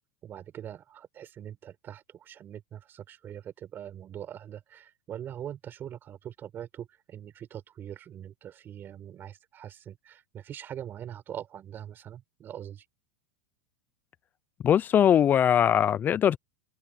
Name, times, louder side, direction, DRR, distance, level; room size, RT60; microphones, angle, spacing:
voice 1, 0.2-12.9, right 10 dB, 30° right, 5.4 m, -42 dB
voice 2, 14.6-16.4, left 9 dB, 25° left, 0.7 m, -21 dB
supercardioid pair, 120°, 7 cm